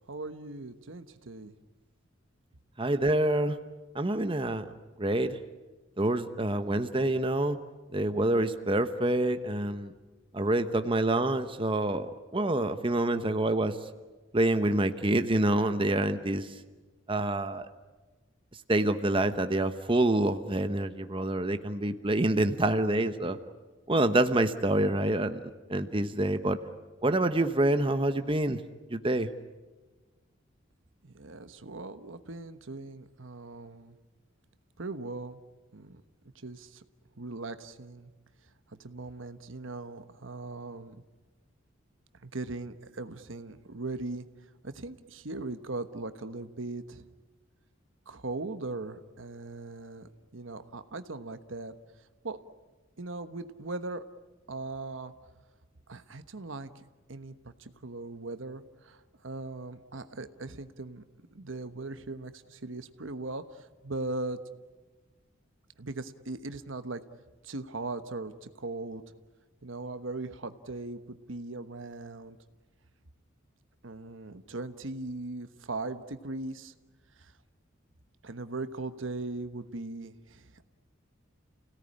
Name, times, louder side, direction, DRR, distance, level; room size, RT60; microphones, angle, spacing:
voice 1, 0.1-1.5 31.0-33.9 34.8-35.4 35.7-36.0 36.3-36.8 37.2-38.1 38.7-41.0 42.2-44.3 44.6-47.0 48.1-51.7 52.2-52.4 53.0-54.0 54.5-55.1 55.9-61.0 61.3-64.4 65.8-67.0 67.4-69.0 69.6-72.4 73.8-76.7 77.2-77.3 78.2-80.7, right 2 dB, 80° right, 10 dB, 1.2 m, -39 dB
voice 2, 2.8-3.6 3.9-4.7 5.0-5.4 6.0-7.6 7.9-9.9 10.3-12.1 12.3-13.8 14.3-16.5 17.1-17.7 18.7-23.4 23.9-25.4 25.7-26.6 27.0-28.6 28.9-29.3, right 1 dB, 25° right, 9 dB, 1.0 m, -27 dB
29.5 x 17.5 x 10.0 m, 1.3 s
head